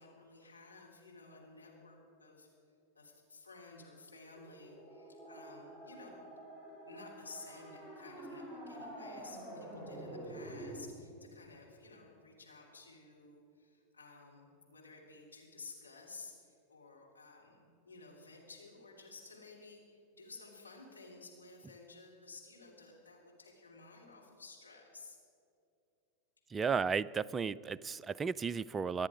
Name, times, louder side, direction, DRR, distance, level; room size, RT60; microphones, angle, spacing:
voice 1, 0.0-2.5 2.9-6.2 6.8-25.2, left 3 dB, 80° left, -2 dB, 3.2 m, -54 dB
sound 1, 4.3-10.9, right 1 dB, 15° left, 3.6 m, -48 dB
voice 2, 26.5-29.1, right 5 dB, 20° right, 17 dB, 0.3 m, -34 dB
24.5 x 9.8 x 5.0 m, 2.6 s
figure-of-eight pair, 90°, 0 cm